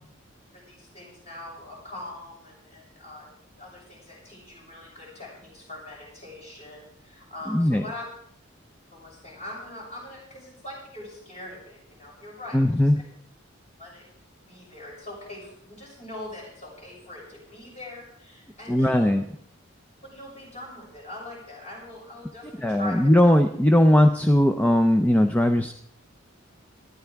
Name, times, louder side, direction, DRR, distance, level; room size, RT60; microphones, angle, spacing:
voice 1, 0.5-3.3 3.6-8.0 8.9-12.9 13.8-14.0 14.4-19.1 20.1-23.1, left 1 dB, 30° left, -4 dB, 6.9 m, -42 dB
voice 2, 7.5-7.8 12.5-13.0 18.7-19.2 22.6-25.7, left 1 dB, 5° left, 6 dB, 0.5 m, -19 dB
18.5 x 13.0 x 3.5 m, 0.67 s
head